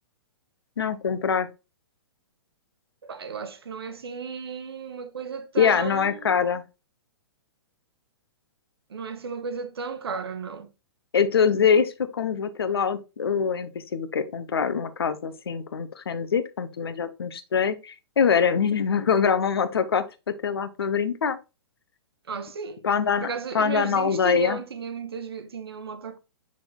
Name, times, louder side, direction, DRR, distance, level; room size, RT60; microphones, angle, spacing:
voice 1, 0.8-1.5 5.6-6.6 11.1-21.4 22.8-23.3 23.5-24.6, left 6 dB, 60° left, 0.9 m, -24 dB
voice 2, 3.0-6.4 8.9-10.7 22.3-22.8 23.2-26.2, right 5 dB, 60° right, 1.1 m, -34 dB
7.4 x 6.1 x 2.3 m
figure-of-eight pair, 115°, 14 cm